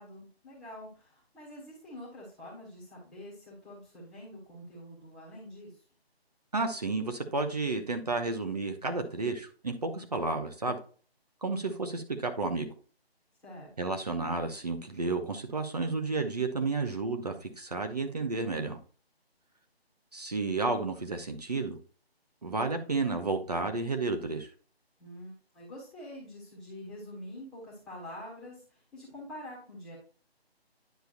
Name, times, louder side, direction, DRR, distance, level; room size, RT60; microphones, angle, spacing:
voice 1, 0.0-5.8 13.4-14.0 25.0-30.0, left 1 dB, ahead, -8 dB, 1.2 m, -46 dB
voice 2, 6.5-10.8 11.4-12.7 13.8-18.8 20.1-21.8 22.4-24.5, right 3 dB, 40° right, 5 dB, 0.9 m, -31 dB
10.5 x 5.6 x 2.5 m, 0.39 s
figure-of-eight pair, 155°, 32 cm